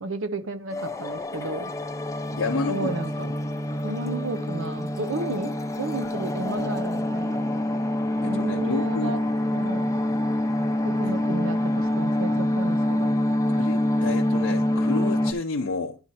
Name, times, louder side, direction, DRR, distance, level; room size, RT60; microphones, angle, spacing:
voice 1, 0.0-1.7 2.7-3.3 3.8-7.5 8.3-9.2 9.5-10.0 10.8-13.1, right 2 dB, 65° right, 0.7 m, -33 dB
sound 1, 0.7-15.3, left 1 dB, 15° left, 0.7 m, -26 dB
voice 2, 2.3-2.9 3.2-3.3 8.2-9.2 13.5-16.0, left 3 dB, 80° left, 0.7 m, -30 dB
10.5 x 4.3 x 4.2 m
head